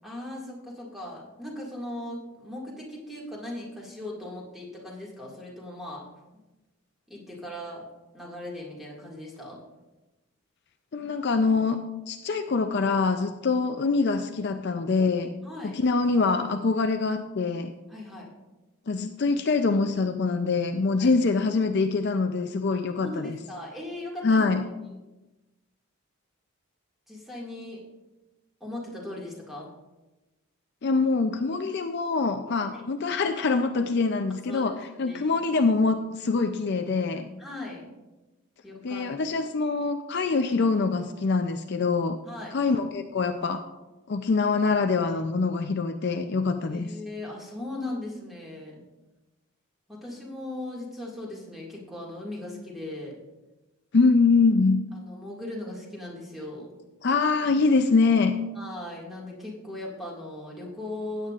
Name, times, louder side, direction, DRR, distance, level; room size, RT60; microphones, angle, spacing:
voice 1, 0.0-6.1 7.1-7.9 8.1-9.6 15.4-15.8 17.9-18.3 21.0-21.1 22.7-24.4 24.9-25.0 27.1-27.8 28.6-29.7 32.7-32.8 34.5-35.3 37.4-37.9 38.6-39.1 42.2-42.6 46.7-48.8 49.9-53.2 54.9-56.7 58.6-61.3, left 1 dB, ahead, -4 dB, 1.9 m, -38 dB
voice 2, 10.9-11.8 12.1-15.3 15.6-17.7 18.9-23.4 24.2-24.6 30.8-34.7 35.0-37.3 38.8-42.2 42.5-43.6 44.1-46.9 53.9-54.8 57.0-58.3, left 4 dB, 50° left, 6 dB, 0.4 m, -24 dB
15.5 x 8.9 x 2.4 m, 1.1 s
head